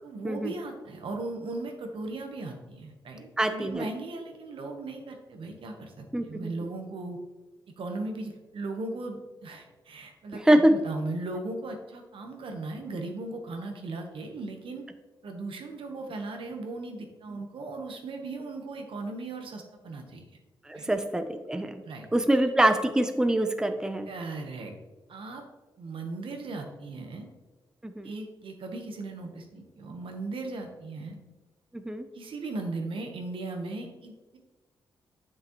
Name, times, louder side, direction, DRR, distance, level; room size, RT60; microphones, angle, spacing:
voice 1, 0.0-5.9 6.2-7.2 7.8-14.8 15.2-20.2 20.7-20.9 21.8-22.1 24.1-24.8 25.1-25.4 25.8-27.3 28.0-31.2 32.1-34.4, right 2 dB, 70° right, 3 dB, 1.1 m, -37 dB
voice 2, 3.4-3.9 6.1-6.5 10.5-10.7 20.7-21.8 22.1-24.1 27.8-28.1 31.7-32.0, right 1 dB, 5° right, 8 dB, 0.6 m, -24 dB
7.4 x 6.0 x 3.0 m, 1.2 s
cardioid pair, 60°, 9 cm